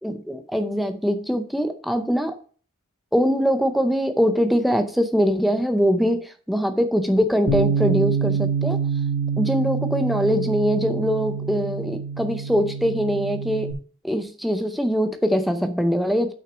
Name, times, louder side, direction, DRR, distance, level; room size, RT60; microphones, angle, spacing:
voice 1, 0.0-2.3 3.1-8.8 9.4-13.8 14.0-16.3, equal, ahead, 7 dB, 0.6 m, -22 dB
Bass guitar, 7.5-13.7, right 6 dB, 75° right, 1.8 m, -26 dB
6.4 x 5.9 x 6.1 m, 0.43 s
head